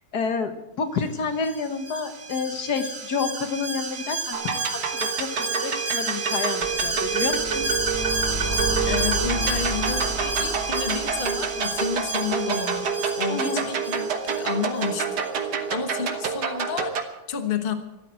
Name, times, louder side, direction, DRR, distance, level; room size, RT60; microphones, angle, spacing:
voice 1, 0.1-7.7 13.3-13.6, left 5 dB, 75° left, 8 dB, 1.8 m, -29 dB
Alarm, 1.4-14.9 15.2-15.3, right 3 dB, 60° right, 2.0 m, -30 dB
sound 1, 4.3-17.0, right 6 dB, 90° right, 2.0 m, -28 dB
sound 2, 6.6-12.8, right 1 dB, 30° right, 5.7 m, -33 dB
voice 2, 8.8-17.7, left 6 dB, 35° left, 7 dB, 1.3 m, -31 dB
14.5 x 12.5 x 7.6 m, 0.99 s
omnidirectional pair, 1.7 m